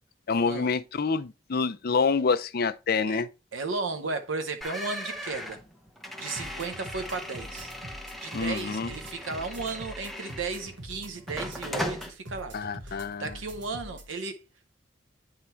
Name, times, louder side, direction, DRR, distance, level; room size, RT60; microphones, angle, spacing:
voice 1, 0.3-3.3 8.3-8.9 12.5-13.4, left 4 dB, 55° left, 0.5 m, -27 dB
voice 2, 3.5-5.6 6.2-7.7 8.2-12.6 12.8-14.4, right 4 dB, 90° right, 0.7 m, -35 dB
sound 1, 4.6-10.8 11.3-12.1, equal, ahead, 0.9 m, -38 dB
sound 2, 6.4-14.1, equal, 70° right, 1.5 m, -44 dB
9.4 x 3.7 x 4.4 m
head